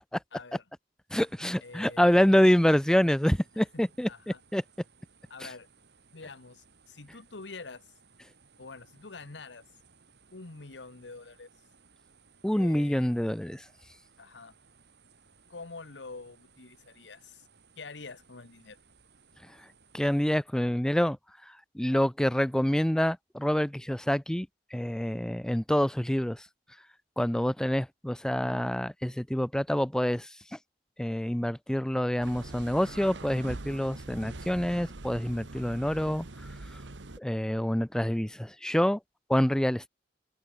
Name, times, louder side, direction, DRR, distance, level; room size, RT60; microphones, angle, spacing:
voice 1, 0.3-0.6 1.6-2.3 3.7-4.4 5.3-5.7 6.1-7.9 8.6-9.6 10.3-11.5 12.5-13.1 14.2-14.5 15.5-17.5 17.8-18.8, left 3 dB, 75° left, 1.3 m, -46 dB
voice 2, 1.1-4.1 4.5-4.6 12.4-13.6 19.9-21.2 21.8-26.4 27.2-30.3 31.0-36.3 37.2-39.0 39.3-39.9, equal, 5° left, 0.4 m, -26 dB
sound 1, 1.2-20.4, right 5 dB, 65° right, 6.0 m, -62 dB
sound 2, 32.2-37.2, right 2 dB, 85° right, 1.5 m, -43 dB
open air
head